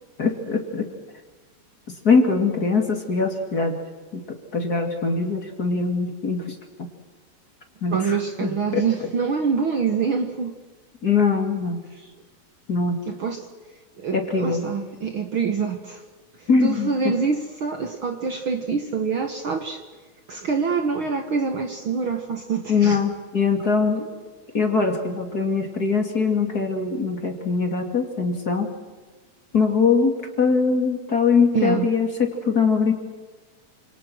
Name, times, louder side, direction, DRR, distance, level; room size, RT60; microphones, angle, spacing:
voice 1, 0.2-0.9 1.9-3.8 4.1-6.9 7.8-8.2 8.4-8.8 11.0-11.8 12.7-13.0 14.1-14.6 16.5-17.1 22.7-24.1 24.5-28.7 29.5-30.1 30.4-32.9, left 5 dB, 30° left, 4 dB, 2.9 m, -22 dB
voice 2, 7.9-10.5 13.1-13.5 14.0-16.0 16.4-19.8 20.3-23.0 31.5-31.9, right 5 dB, 50° right, 6 dB, 1.9 m, -25 dB
28.0 x 27.0 x 6.3 m, 1.3 s
omnidirectional pair, 3.4 m